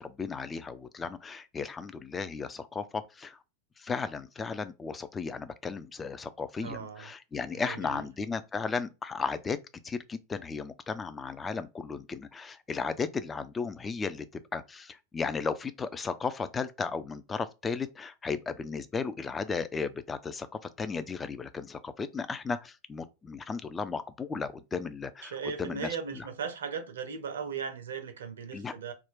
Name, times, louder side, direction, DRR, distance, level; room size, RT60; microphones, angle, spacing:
voice 1, 0.0-3.4 3.8-9.6 9.8-20.5 20.8-25.9 28.5-28.7, left 5 dB, 15° left, 0.3 m, -35 dB
voice 2, 6.6-7.1 7.6-8.0 25.2-28.9, right 6 dB, 65° right, 0.6 m, -37 dB
2.4 x 2.2 x 3.6 m
figure-of-eight pair, 90°, 0 cm